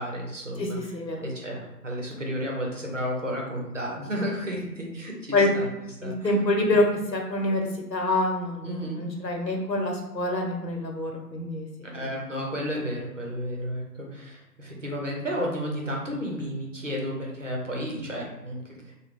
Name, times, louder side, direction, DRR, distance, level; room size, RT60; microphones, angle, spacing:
voice 1, 0.0-0.8 1.2-5.7 6.0-6.3 6.7-6.8 8.6-9.0 11.9-18.9, equal, 50° right, -1 dB, 0.8 m, -32 dB
voice 2, 0.6-1.3 5.3-5.5 6.0-6.9 7.1-12.1, left 2 dB, 80° left, 2 dB, 1.0 m, -26 dB
3.0 x 2.2 x 3.4 m, 0.95 s
figure-of-eight pair, 165°, 50 cm